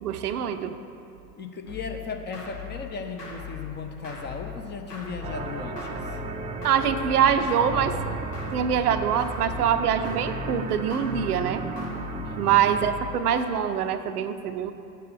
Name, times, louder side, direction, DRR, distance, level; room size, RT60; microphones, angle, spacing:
voice 1, 0.0-0.8 6.6-8.0 8.5-11.6 12.4-14.7, right 8 dB, 75° right, 9 dB, 0.6 m, -24 dB
voice 2, 1.4-6.2 12.2-12.5, left 4 dB, 20° left, 5 dB, 0.7 m, -36 dB
sound 1, 1.7-13.4, left 5 dB, 80° left, 1.6 m, -40 dB
sound 2, 5.2-12.9, right 4 dB, 15° right, 0.5 m, -34 dB
8.8 x 6.8 x 5.1 m, 2.6 s
figure-of-eight pair, 75°, 47 cm